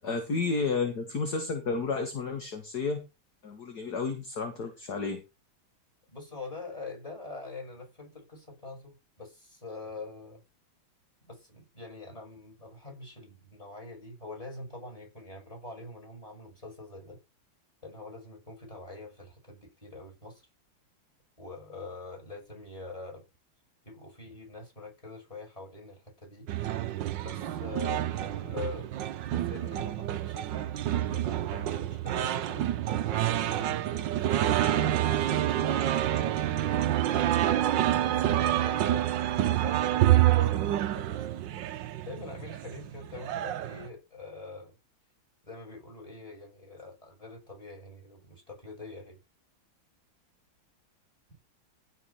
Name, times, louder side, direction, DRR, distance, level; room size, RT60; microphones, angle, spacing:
voice 1, 0.0-3.0 3.4-5.2, left 4 dB, 50° left, 2.3 m, -31 dB
voice 2, 6.1-10.4 11.2-17.2 17.8-20.5 21.4-23.2 23.8-26.5 27.2-28.9 29.3-32.6 33.1-37.5 38.0-41.4 42.0-44.7 45.5-49.2, left 3 dB, 15° left, 6.9 m, -44 dB
sound 1, 26.5-43.9, right 12 dB, 65° right, 1.4 m, -28 dB
16.0 x 5.4 x 5.9 m
omnidirectional pair, 2.3 m